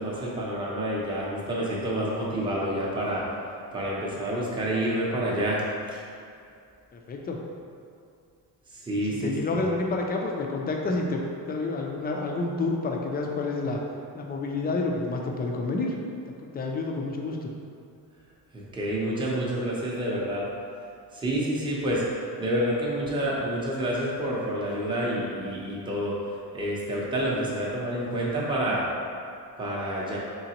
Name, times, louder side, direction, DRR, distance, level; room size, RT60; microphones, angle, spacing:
voice 1, 0.0-3.2 3.7-5.6 5.9-6.0 8.7-9.7 18.5-20.5 21.1-26.2 26.5-28.9 29.6-30.2, right 1 dB, 10° right, -5 dB, 0.6 m, -28 dB
voice 2, 6.9-7.4 9.2-13.8 14.1-16.0 16.4-17.5, left 3 dB, 25° left, 1 dB, 0.3 m, -29 dB
3.9 x 3.4 x 2.9 m, 2.5 s
cardioid pair, 135°, 40 cm